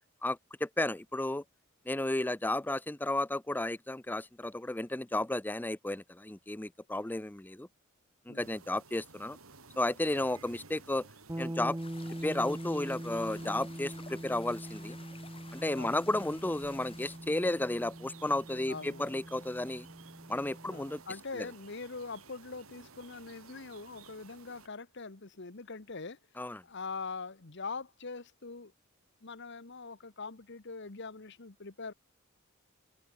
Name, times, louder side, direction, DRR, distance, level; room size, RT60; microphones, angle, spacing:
voice 1, 0.2-1.4 1.9-7.7 8.3-9.4 9.8-11.1 11.4-11.8 12.2-15.0 15.5-19.9 20.3-21.0 21.3-21.5 26.4-26.6, left 1 dB, 10° left, 0.5 m, -33 dB
sound 1, 8.4-24.7, right 4 dB, 90° right, 3.5 m, -55 dB
sound 2, 11.3-21.1, right 1 dB, 15° right, 0.8 m, -43 dB
sound 3, 11.8-17.2, left 5 dB, 25° left, 5.5 m, -54 dB
voice 2, 18.7-19.2 20.6-26.2 26.6-28.7 29.2-31.9, left 4 dB, 60° left, 1.3 m, -43 dB
head